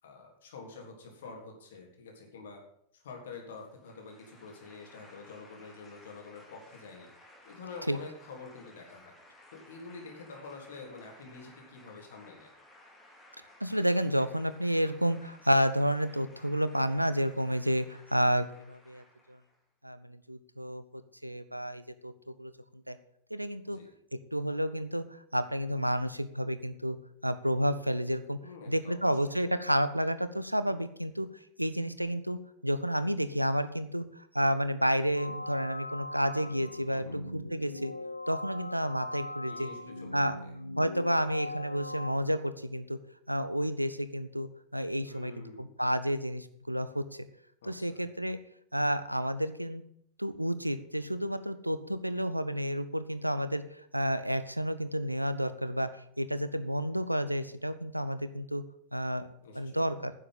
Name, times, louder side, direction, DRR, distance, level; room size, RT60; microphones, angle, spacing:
voice 1, 0.0-2.6 2.9-7.1 7.4-9.1 9.5-12.5 23.7-23.9 28.4-29.1 36.9-37.2 39.4-40.2 45.0-45.7 47.6-48.0 59.4-59.9, left 4 dB, 60° left, 1 dB, 3.4 m, -47 dB
sound 1, 3.5-19.6, left 1 dB, 15° left, 3.1 m, -58 dB
voice 2, 13.6-19.0 19.8-22.5 22.9-23.0 23.3-23.8 24.3-25.0 25.3-27.0 27.2-28.4 28.7-31.3 31.6-37.9 38.3-39.7 40.1-40.4 40.8-43.0 43.3-47.0 47.6-48.4 48.7-49.8 50.2-53.6 53.9-55.9 56.2-58.6 58.9-59.3 59.5-60.1, equal, 90° right, 13 dB, 0.8 m, -30 dB
sound 2, 35.1-42.2, left 1 dB, 85° left, 0.5 m, -40 dB
10.0 x 7.5 x 8.1 m, 0.70 s
figure-of-eight pair, 90°, 0 cm